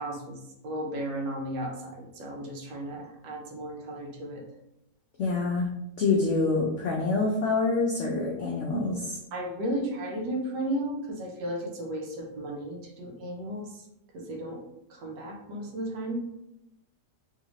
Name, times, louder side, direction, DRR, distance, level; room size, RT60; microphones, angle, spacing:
voice 1, 0.0-4.4 9.3-13.9 14.1-14.6 14.9-16.3, right 1 dB, 80° right, 1 dB, 1.3 m, -34 dB
voice 2, 5.2-5.7 6.0-9.2, left 3 dB, 85° left, -1 dB, 0.6 m, -26 dB
3.1 x 2.7 x 2.9 m, 0.85 s
omnidirectional pair, 1.8 m